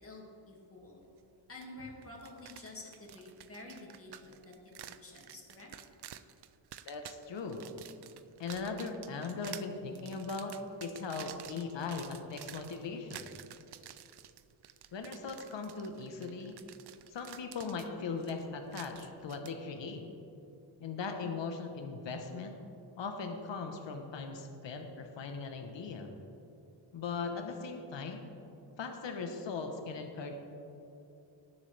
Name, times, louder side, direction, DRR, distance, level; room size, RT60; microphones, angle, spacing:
voice 1, 0.0-1.0 1.5-5.7, left 2 dB, 30° left, -2 dB, 2.1 m, -49 dB
sound 1, 1.6-1.7 2.0-19.5, right 11 dB, 55° right, 0.5 m, -51 dB
voice 2, 6.8-7.7 8.4-10.5 10.8-13.3 14.9-16.5 17.1-20.0 20.8-22.6 23.0-26.1 26.9-28.3 28.8-30.4, left 4 dB, 65° left, 5 dB, 1.1 m, -39 dB
18.5 x 7.1 x 3.3 m, 2.8 s
wide cardioid pair, 105°, 47 cm